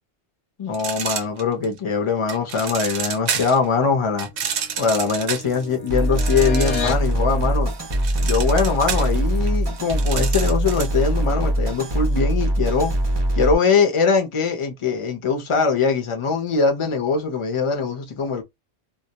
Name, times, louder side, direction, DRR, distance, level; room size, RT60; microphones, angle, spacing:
voice 1, 0.6-4.3 4.8-7.7 8.2-12.9 13.4-18.4, left 5 dB, 35° left, 0.6 m, -22 dB
sound 1, 0.7-1.8 2.3-3.7 4.2-7.1 7.4-11.0, right 7 dB, 75° right, 0.8 m, -29 dB
sound 2, 4.0-7.1, left 5 dB, 70° left, 0.8 m, -33 dB
sound 3, 5.9-13.5, right 1 dB, 35° right, 0.4 m, -22 dB
2.2 x 2.1 x 2.8 m
omnidirectional pair, 1.2 m